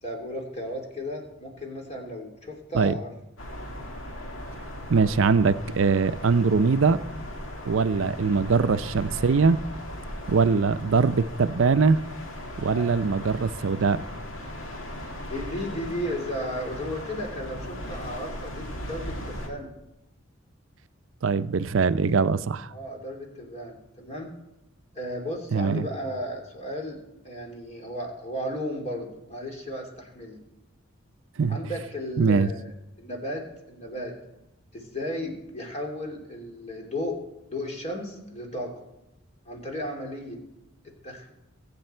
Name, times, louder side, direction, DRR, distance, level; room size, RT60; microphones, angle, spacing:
voice 1, 0.0-3.1 7.9-8.1 12.7-12.9 15.3-19.7 22.7-24.3 24.9-30.4 31.5-32.7 33.0-34.1 34.7-37.2 37.5-38.7 39.5-40.4 40.8-41.3, equal, 35° left, 2.9 m, -35 dB
sound 1, 3.4-19.5, left 1 dB, 75° left, 2.2 m, -38 dB
voice 2, 4.9-7.0 7.7-9.6 10.3-12.0 12.6-14.0 21.2-22.7 25.5-25.9 31.4-31.6 32.2-32.5, right 5 dB, 70° right, 0.5 m, -22 dB
23.0 x 8.5 x 4.4 m
head